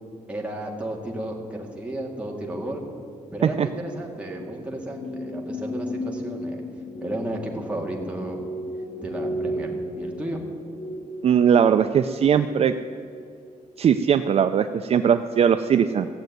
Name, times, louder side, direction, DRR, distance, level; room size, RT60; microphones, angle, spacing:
voice 1, 0.3-2.8 3.3-6.6 7.0-8.4 9.0-10.4, right 1 dB, 10° right, -1 dB, 2.0 m, -33 dB
sound 1, 4.3-14.6 14.9-15.1, equal, 75° left, 2.0 m, -35 dB
voice 2, 11.2-12.7 13.8-16.1, right 8 dB, 45° right, 8 dB, 0.4 m, -19 dB
16.0 x 8.0 x 9.2 m, 2.4 s
wide cardioid pair, 175°, 14 cm